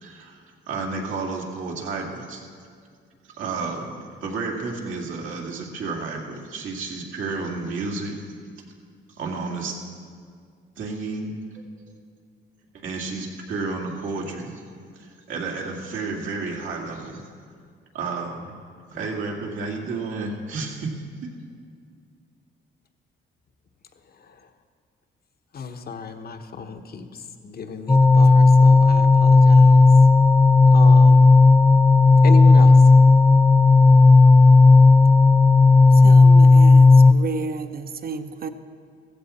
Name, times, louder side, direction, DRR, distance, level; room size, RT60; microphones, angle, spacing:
voice 1, 0.0-2.5 3.3-8.2 9.1-9.8 10.8-11.6 12.7-14.6 14.9-17.2 17.9-18.5 18.9-20.7, right 3 dB, 80° right, 2.3 m, -31 dB
voice 2, 24.1-24.5 25.5-29.9 30.7-31.3 32.2-32.8, left 5 dB, 50° left, 1.2 m, -34 dB
sound 1, 27.9-37.1, left 3 dB, 10° left, 0.4 m, -12 dB
voice 3, 36.0-38.5, right 5 dB, 50° right, 0.9 m, -32 dB
15.5 x 15.0 x 4.3 m
cardioid pair, 90°, 20 cm